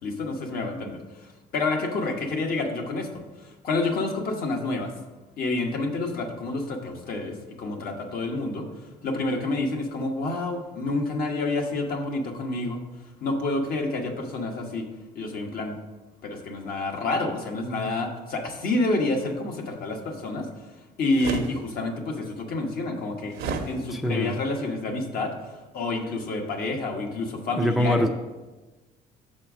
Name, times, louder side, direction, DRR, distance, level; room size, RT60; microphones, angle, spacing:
voice 1, 0.0-4.9 5.4-8.7 9.0-12.8 13.2-14.9 15.1-15.8 16.2-20.5 21.0-23.4 23.7-25.3 25.7-28.1, left 2 dB, 60° left, 2 dB, 1.2 m, -28 dB
sound 1, 21.1-21.5 23.3-23.7, right 5 dB, 80° right, 0.8 m, -29 dB
voice 2, 23.9-24.4 27.5-28.1, equal, ahead, 7 dB, 0.4 m, -24 dB
6.3 x 4.4 x 6.0 m, 1.2 s
cardioid pair, 110°, 17 cm